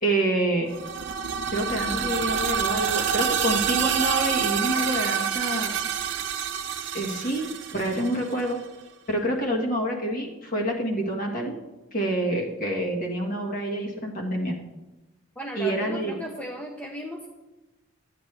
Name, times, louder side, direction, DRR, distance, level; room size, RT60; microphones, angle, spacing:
voice 1, 0.0-0.7 1.5-5.8 6.9-8.6 9.1-11.6 11.9-14.6 15.5-16.1, right 1 dB, 40° left, -1 dB, 1.6 m, -27 dB
sound 1, 0.7-8.5, right 7 dB, 55° right, 0.6 m, -27 dB
voice 2, 15.4-17.3, equal, 5° left, 0 dB, 0.6 m, -36 dB
12.0 x 9.1 x 3.4 m, 1.1 s
head